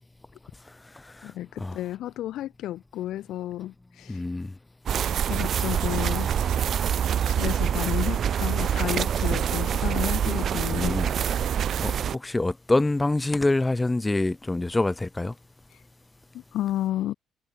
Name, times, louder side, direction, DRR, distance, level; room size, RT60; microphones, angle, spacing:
voice 1, 1.2-4.2 5.3-6.3 7.3-11.0 16.3-17.1, left 13 dB, 75° left, 0.7 m, -32 dB
voice 2, 4.1-4.5 10.7-11.1 11.8-15.3, left 2 dB, 10° left, 0.6 m, -25 dB
sound 1, 4.9-12.2, right 8 dB, 45° right, 1.3 m, -25 dB
sound 2, 4.9-12.0, right 14 dB, 85° right, 4.2 m, -42 dB
cardioid pair, 150°, 0 cm